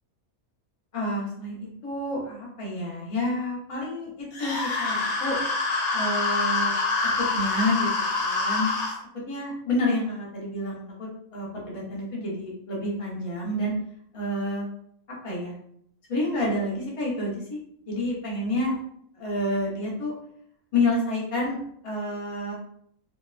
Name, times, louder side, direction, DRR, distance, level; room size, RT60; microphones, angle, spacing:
voice 1, 0.9-5.4 5.9-6.7 7.0-7.9 8.2-8.8 9.3-13.7 14.1-14.7 15.2-15.5 16.1-17.6 17.9-18.7 19.2-20.1 20.7-21.6 21.8-22.5, left 1 dB, 35° left, -4 dB, 0.6 m, -29 dB
sound 1, 4.3-9.0, left 3 dB, 90° left, 1.1 m, -26 dB
2.8 x 2.1 x 2.3 m, 0.69 s
omnidirectional pair, 1.5 m